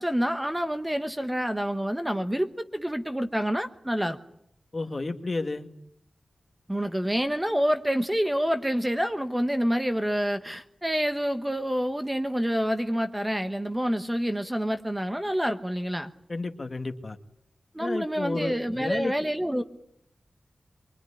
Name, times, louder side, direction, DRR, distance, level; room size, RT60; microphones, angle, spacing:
voice 1, 0.0-4.2 6.7-16.1 17.7-19.6, equal, 10° right, 8 dB, 1.1 m, -27 dB
voice 2, 4.7-5.7 16.3-17.2 17.8-19.1, left 3 dB, 35° left, 6 dB, 1.9 m, -31 dB
24.5 x 23.5 x 9.9 m, 0.75 s
wide cardioid pair, 120°, 0 cm